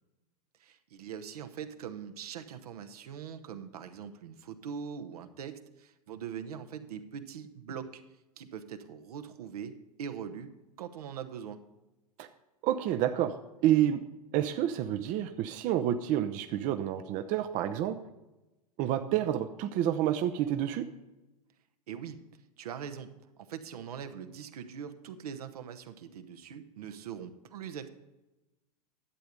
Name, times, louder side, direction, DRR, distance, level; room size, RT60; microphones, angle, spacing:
voice 1, 0.6-8.0 8.4-9.7 10.0-10.5 10.8-11.6 21.9-22.2 22.6-23.1 23.5-27.9, right 8 dB, 70° right, 8 dB, 1.0 m, -42 dB
voice 2, 12.6-13.4 13.6-14.0 14.3-18.0 18.8-20.9, right 11 dB, 40° right, 9 dB, 0.7 m, -29 dB
11.5 x 8.0 x 5.1 m, 1.0 s
hypercardioid pair, 95°, 20 cm